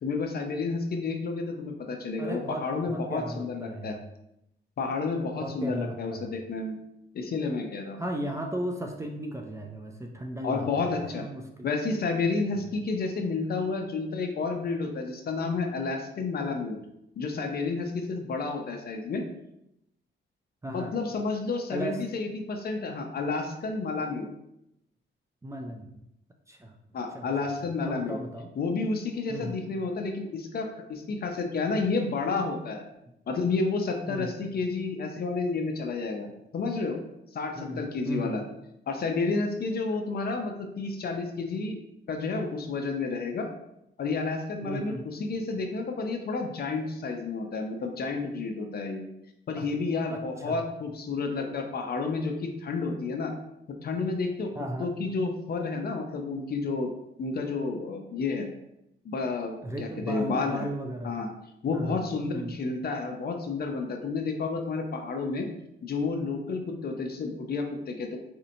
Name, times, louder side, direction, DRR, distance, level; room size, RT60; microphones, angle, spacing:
voice 1, 0.0-3.9 4.8-6.8 7.1-8.0 10.4-11.2 11.6-16.8 17.2-19.2 20.7-24.3 26.9-28.2 28.6-32.8 33.3-36.3 36.5-37.0 37.3-38.4 38.9-41.8 42.1-43.5 44.0-49.0 49.5-53.3 53.8-54.5 54.8-56.9 57.2-58.5 59.0-60.7 61.0-61.3 61.6-65.5 65.8-68.2, left 4 dB, 50° left, 4 dB, 0.5 m, -30 dB
voice 2, 2.2-4.0 5.4-6.3 8.0-11.7 12.5-12.7 20.6-20.9 21.7-22.0 25.4-26.0 26.5-26.8 27.1-28.5 29.3-29.6 34.1-34.4 37.6-38.4 44.6-45.1 49.6-49.7 50.1-50.6 54.5-54.9 59.6-61.2 61.7-62.0 62.3-62.6, equal, 15° right, 2 dB, 0.4 m, -36 dB
4.2 x 2.7 x 2.7 m, 0.83 s
cardioid pair, 105°, 20 cm